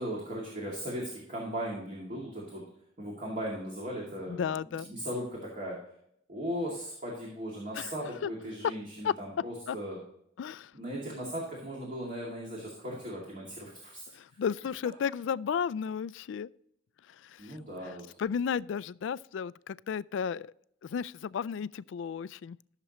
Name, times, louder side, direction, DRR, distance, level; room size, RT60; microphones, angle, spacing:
voice 1, 0.0-2.6 3.0-5.8 6.3-10.0 10.7-14.0 17.4-18.0, equal, 40° right, 2.3 m, -37 dB
voice 2, 4.3-4.9 7.8-7.9 8.2-8.3 9.0-9.1 9.7-9.8 10.4-10.7 14.1-16.5 17.2-17.6 18.2-20.5 20.8-22.6, left 7 dB, 65° left, 0.3 m, -33 dB
14.0 x 6.8 x 3.0 m
head